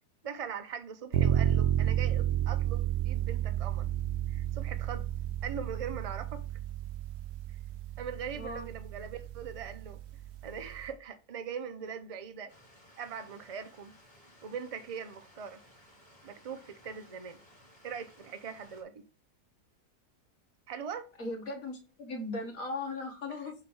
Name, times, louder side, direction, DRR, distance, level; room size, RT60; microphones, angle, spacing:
voice 1, 0.2-3.9 4.3-5.1 5.4-6.4 8.0-10.0 10.4-12.5 13.0-13.9 14.4-15.6 16.2-17.4 17.8-19.0 20.7-21.1 23.3-23.4, right 7 dB, 50° right, 0.4 m, -41 dB
sound 1, 1.1-10.9, right 11 dB, 75° right, 1.1 m, -31 dB
voice 2, 8.3-8.7 21.2-23.5, left 2 dB, 55° left, 2.2 m, -38 dB
Stream, 12.5-18.8, equal, 25° left, 2.7 m, -59 dB
7.3 x 3.0 x 5.6 m
omnidirectional pair, 1.8 m